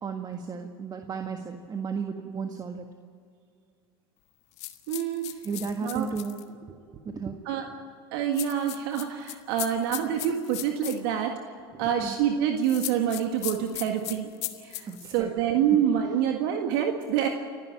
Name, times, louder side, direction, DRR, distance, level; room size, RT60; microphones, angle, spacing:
voice 1, 0.0-2.9 5.4-6.4 6.7-7.4 11.7-12.1 14.9-15.3, right 5 dB, 30° right, 5 dB, 1.7 m, -34 dB
sound 1, 4.6-6.4 8.3-11.0 12.6-15.1, left 17 dB, 60° left, 1.5 m, -37 dB
voice 2, 4.9-5.3 5.8-6.1 7.5-7.7 8.1-11.4 11.8-14.3 14.6-14.9 15.1-17.3, right 9 dB, 70° right, 4 dB, 1.8 m, -26 dB
29.0 x 11.5 x 8.8 m, 2.3 s
hypercardioid pair, 90°, 13 cm